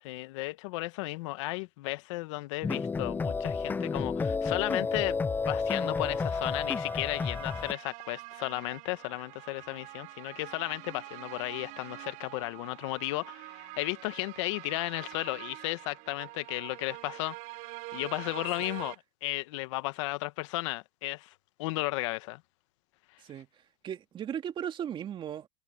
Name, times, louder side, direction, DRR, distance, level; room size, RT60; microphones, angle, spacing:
voice 1, 0.0-5.2 5.5-17.3 17.9-18.9 19.2-21.3 21.6-22.4, left 21 dB, 70° left, 1.5 m, -34 dB
sound 1, 2.6-7.7, left 4 dB, 10° left, 0.4 m, -31 dB
sound 2, 5.6-19.0, right 23 dB, 55° right, 4.3 m, -46 dB
voice 2, 23.8-25.5, right 9 dB, 30° right, 2.3 m, -37 dB
supercardioid pair, 125°, 16 cm